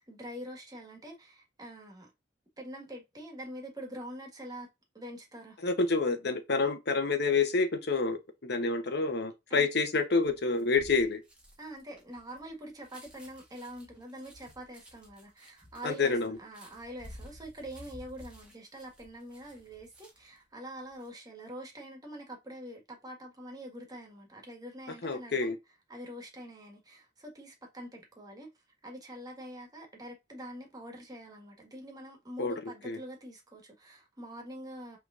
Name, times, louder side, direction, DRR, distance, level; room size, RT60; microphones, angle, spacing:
voice 1, 0.0-2.1 2.6-4.7 4.9-5.6 9.5-9.7 11.6-25.6 25.9-28.5 28.8-35.0, right 1 dB, 20° right, 1.6 m, -45 dB
voice 2, 5.6-11.2 15.8-16.4 25.0-25.6 32.4-32.5 32.8-33.0, left 4 dB, 65° left, 0.9 m, -28 dB
sound 1, 10.2-20.4 20.8-21.1, equal, 5° right, 1.4 m, -54 dB
5.8 x 3.4 x 2.5 m
head